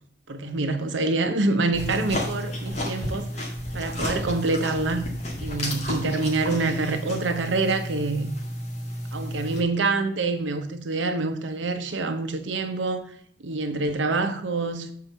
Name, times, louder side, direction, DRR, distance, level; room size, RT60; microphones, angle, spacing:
voice 1, 0.3-5.0 5.4-8.3 9.1-13.1 13.4-14.9, right 3 dB, 85° right, 0.8 m, -26 dB
sound 1, 1.7-9.6, equal, 35° left, 1.9 m, -32 dB
7.6 x 4.6 x 5.4 m
head